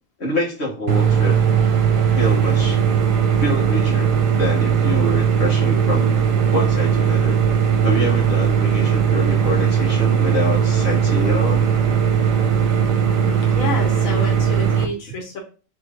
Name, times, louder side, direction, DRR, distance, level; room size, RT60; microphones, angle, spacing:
voice 1, 0.2-1.4 2.1-2.8 3.4-6.2 6.5-7.4 7.8-11.7, left 1 dB, 55° left, -3 dB, 1.8 m, -26 dB
sound 1, 0.9-14.9, right 7 dB, 75° right, 1.1 m, -18 dB
voice 2, 13.2-15.4, left 3 dB, 85° left, 0 dB, 1.4 m, -29 dB
3.6 x 3.4 x 3.7 m, 0.37 s
omnidirectional pair, 1.4 m